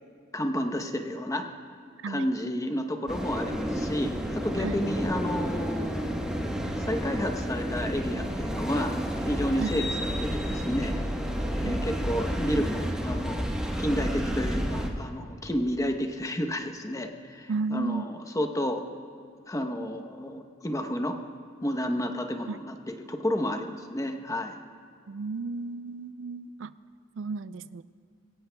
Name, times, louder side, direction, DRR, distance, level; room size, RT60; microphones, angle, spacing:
voice 1, 0.3-1.5 2.1-6.1 6.8-11.0 11.5-13.5 13.8-18.8 19.5-21.2 21.6-24.5, equal, 15° left, 5 dB, 0.9 m, -31 dB
sound 1, 3.1-14.9, equal, 5° right, 1.1 m, -30 dB
voice 2, 11.6-12.0 17.5-18.0 22.5-22.6 25.1-26.7 27.2-27.8, right 4 dB, 85° right, 15 dB, 0.4 m, -33 dB
22.0 x 17.5 x 2.3 m, 2.4 s
head